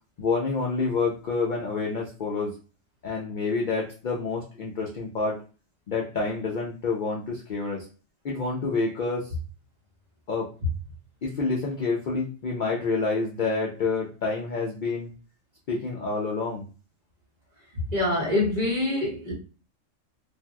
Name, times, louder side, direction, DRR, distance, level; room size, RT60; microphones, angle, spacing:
voice 1, 0.2-2.5 3.0-5.4 5.9-7.9 8.2-9.3 10.3-10.5 11.2-15.1 15.7-16.7, left 4 dB, 60° left, -2 dB, 0.5 m, -28 dB
voice 2, 17.9-19.3, left 2 dB, 35° right, -4 dB, 0.9 m, -25 dB
3.3 x 2.4 x 2.2 m, 0.36 s
omnidirectional pair, 1.3 m